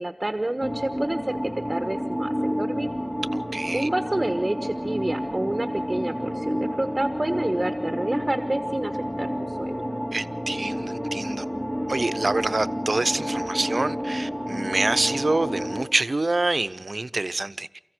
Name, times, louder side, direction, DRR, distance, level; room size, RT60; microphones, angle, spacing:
voice 1, 0.0-1.4 1.7-2.9 3.7-9.7, right 1 dB, 35° right, 1.2 m, -28 dB
sound 1, 0.6-15.8, equal, 20° left, 3.7 m, -30 dB
voice 2, 3.3-3.9 10.1-11.4 11.9-17.7, right 2 dB, 70° right, 0.7 m, -26 dB
29.0 x 15.0 x 6.2 m
wide cardioid pair, 40°, 0 cm